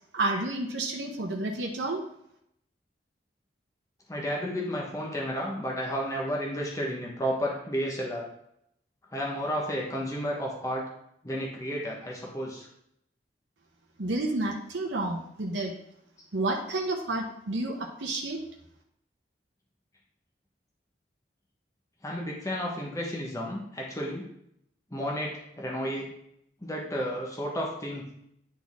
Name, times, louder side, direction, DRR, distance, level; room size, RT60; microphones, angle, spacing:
voice 1, 0.1-2.0 14.0-15.7 16.3-18.4, right 2 dB, 90° right, 0 dB, 0.9 m, -30 dB
voice 2, 4.1-8.3 9.1-10.8 11.2-12.7 22.0-24.2 24.9-26.1 26.6-28.1, equal, 20° left, -2 dB, 1.2 m, -32 dB
9.8 x 4.2 x 3.6 m, 0.74 s
head